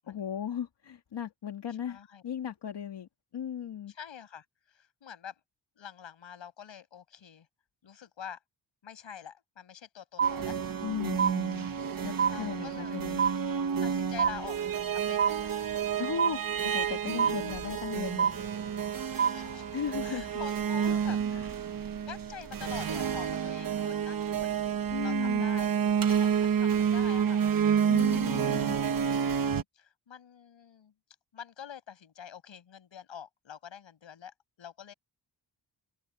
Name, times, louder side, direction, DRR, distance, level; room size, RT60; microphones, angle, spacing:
voice 1, 0.1-3.9 10.8-11.7 12.0-13.2 16.0-18.4 19.7-20.3 20.9-21.0 21.3-21.5 24.9-25.5 27.9-28.8, left 8 dB, 65° left, 2.1 m, -37 dB
voice 2, 1.9-2.2 3.9-5.3 5.8-7.5 7.8-8.4 8.8-10.8 12.2-13.0 13.8-15.6 19.0-21.2 22.1-24.6 25.0-25.7 26.1-27.4 28.3-28.7 29.2-30.9 31.3-34.9, left 8 dB, 80° left, 6.1 m, -46 dB
sound 1, 10.2-10.9 11.2-11.9 12.2-12.9 13.2-13.9 14.2-14.9 15.2-15.9 16.2-16.9 17.2-17.9 18.2-18.9 19.2-19.9, right 7 dB, 30° right, 0.7 m, -29 dB
sound 2, 10.2-29.6, right 7 dB, 50° right, 1.2 m, -30 dB
wide cardioid pair, 160°, 45 cm